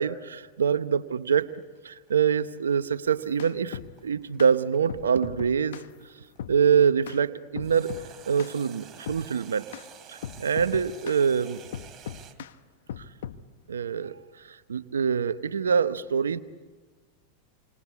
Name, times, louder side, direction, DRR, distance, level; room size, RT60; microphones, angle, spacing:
voice 1, 0.0-1.5 1.8-5.8 6.5-7.9 8.3-9.6 10.1-11.6 13.0-13.1 13.7-16.4, right 7 dB, 90° right, 12 dB, 0.9 m, -25 dB
sound 1, 1.4-6.5 7.6-12.4, right 8 dB, 30° right, 3.1 m, -50 dB
sound 2, 3.1-3.9 4.4-4.5 4.9-5.9 6.4-6.6 7.1-7.2 7.6-8.1 8.4-8.6 9.1-9.3 9.7-9.9 10.2-11.2 11.7-12.5 12.9-13.4, left 9 dB, 75° left, 1.1 m, -38 dB
28.5 x 24.5 x 8.3 m, 1.4 s
hypercardioid pair, 100°, 0 cm